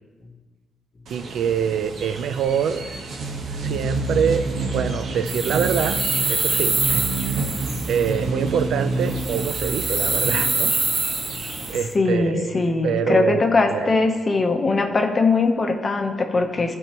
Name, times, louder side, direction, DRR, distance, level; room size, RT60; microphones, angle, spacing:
sound 1, 1.1-11.8, right 3 dB, 65° right, 1.1 m, -29 dB
voice 1, 1.1-2.8 3.6-4.5 4.7-6.0 6.3-7.1 7.9-10.7 11.7-12.6 12.8-14.0, right 7 dB, 85° right, 12 dB, 0.4 m, -25 dB
sound 2, 5.3-8.1 9.1-11.8, right 3 dB, 30° right, 0.5 m, -25 dB
voice 2, 11.9-16.7, left 3 dB, 35° left, 5 dB, 0.8 m, -21 dB
13.0 x 4.5 x 2.9 m, 1.3 s
cardioid pair, 100°, 0 cm